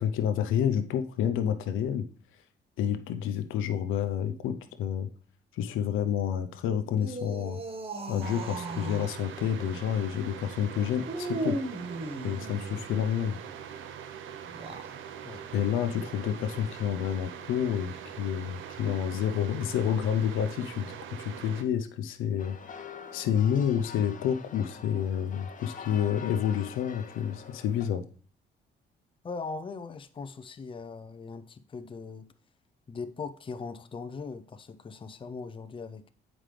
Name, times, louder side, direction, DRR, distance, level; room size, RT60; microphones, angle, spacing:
voice 1, 0.0-2.1 2.8-5.1 5.5-7.6 8.1-11.6 12.2-13.4 15.5-22.6 23.1-28.0, left 9 dB, 90° left, 0.6 m, -29 dB
sound 1, 6.9-9.2 11.0-12.8 14.4-15.0, right 2 dB, 30° right, 1.0 m, -36 dB
sound 2, 8.2-21.6, right 8 dB, 75° right, 0.6 m, -43 dB
sound 3, 22.4-27.9, left 6 dB, 40° left, 0.9 m, -45 dB
voice 2, 29.2-32.3 32.9-36.0, left 4 dB, 25° left, 0.5 m, -40 dB
7.4 x 5.1 x 3.3 m
cardioid pair, 90°, 20 cm